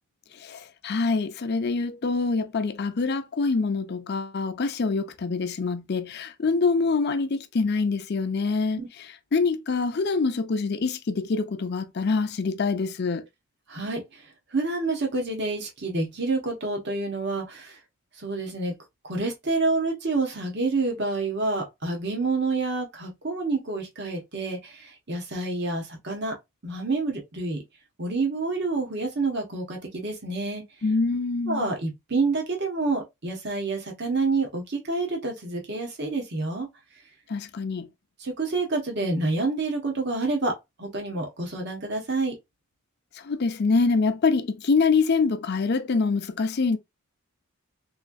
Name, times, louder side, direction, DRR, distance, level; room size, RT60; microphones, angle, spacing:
voice 1, 0.4-13.2 30.8-31.6 37.3-37.9 43.2-46.8, left 4 dB, 45° left, 0.5 m, -25 dB
voice 2, 13.7-14.2 14.5-17.8 18.2-18.7 19.0-26.4 26.6-27.6 28.0-30.6 31.5-36.7 38.2-42.3, right 3 dB, 50° right, 1.1 m, -28 dB
3.6 x 3.1 x 2.4 m
head